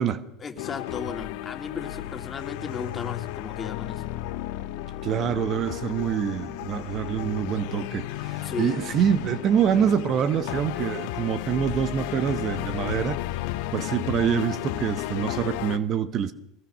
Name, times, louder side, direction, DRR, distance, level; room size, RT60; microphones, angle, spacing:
voice 1, 0.4-4.1 8.4-8.8, left 5 dB, 25° left, 2.8 m, -35 dB
sound 1, 0.6-15.8, left 15 dB, 70° left, 1.2 m, -33 dB
voice 2, 5.0-13.2 13.7-16.3, right 8 dB, 40° right, 1.1 m, -25 dB
22.0 x 20.5 x 6.2 m
supercardioid pair, 115°, 0 cm